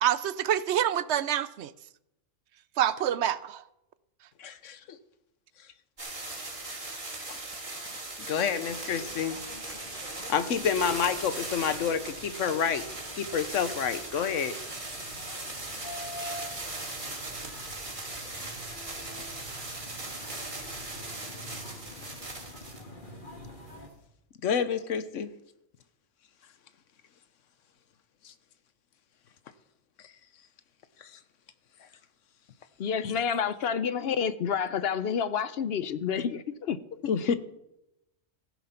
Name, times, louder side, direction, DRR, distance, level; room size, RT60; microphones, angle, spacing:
voice 1, 0.0-1.7 2.8-3.6, right 10 dB, 70° right, 0.8 m, -27 dB
voice 2, 4.4-5.0 7.3-7.4 8.3-9.4 9.9-12.8 13.2-14.6 24.4-25.3 28.2-28.3 31.0-31.2 33.0-33.2 37.0-37.4, left 7 dB, 80° left, 1.2 m, -29 dB
sound 1, 6.0-22.8 23.7-23.8, right 2 dB, 40° right, 2.9 m, -39 dB
sound 2, 8.7-23.9, left 1 dB, 40° left, 2.1 m, -46 dB
voice 3, 32.8-36.8 37.3-37.4, left 7 dB, 60° left, 0.8 m, -29 dB
15.5 x 7.2 x 5.8 m
omnidirectional pair, 1.3 m